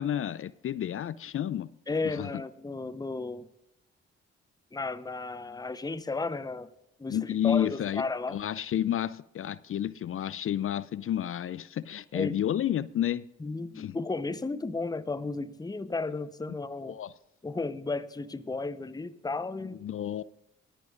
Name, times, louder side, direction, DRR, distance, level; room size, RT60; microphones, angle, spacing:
voice 1, 0.0-1.7 2.0-2.3 7.1-13.3 13.8-14.0 16.8-17.1 19.8-20.2, left 11 dB, 45° left, 0.4 m, -31 dB
voice 2, 1.9-3.5 4.7-6.7 7.0-8.4 12.1-12.3 13.4-17.0 17.4-19.8, left 3 dB, 10° left, 0.8 m, -34 dB
20.0 x 10.0 x 2.5 m
hypercardioid pair, 40°, 31 cm